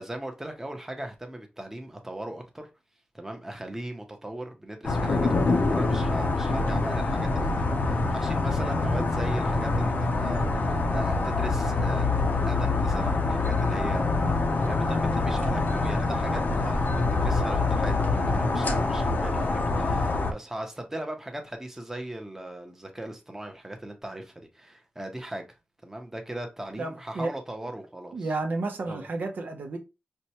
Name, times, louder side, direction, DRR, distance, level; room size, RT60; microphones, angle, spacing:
voice 1, 0.0-2.7 3.1-12.1 12.5-14.0 14.6-25.5 25.8-28.3 28.9-29.0, right 1 dB, 10° right, 0.7 m, -38 dB
sound 1, 4.8-20.3, left 3 dB, 75° left, 0.6 m, -25 dB
voice 2, 26.8-27.3 28.1-29.8, right 3 dB, 90° right, 0.6 m, -31 dB
4.3 x 2.2 x 2.8 m
wide cardioid pair, 105°, 3 cm